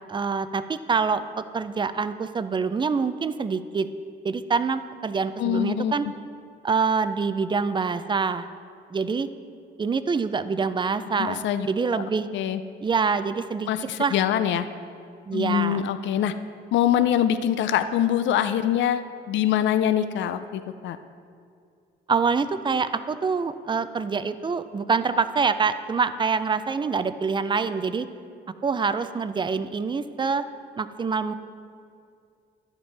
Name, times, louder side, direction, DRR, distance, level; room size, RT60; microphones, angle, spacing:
voice 1, 0.1-3.9 4.2-6.1 6.6-8.5 8.9-9.3 9.8-12.3 12.8-13.7 14.0-14.2 15.3-15.8 22.1-28.1 28.6-30.4 30.8-31.3, right 5 dB, 25° right, 12 dB, 0.4 m, -25 dB
voice 2, 5.4-5.9 11.2-11.7 12.0-12.1 12.3-12.6 13.7-14.7 15.3-16.3 16.7-21.0, left 10 dB, 70° left, 11 dB, 0.4 m, -24 dB
10.5 x 8.0 x 3.3 m, 2.4 s
cardioid pair, 90°, 20 cm